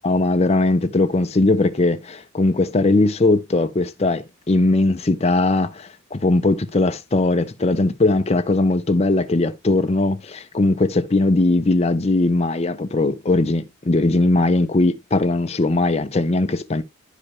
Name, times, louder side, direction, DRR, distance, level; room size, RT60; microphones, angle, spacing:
voice 1, 0.0-16.8, left 2 dB, 30° left, 0.5 m, -19 dB
11.0 x 5.0 x 3.0 m
head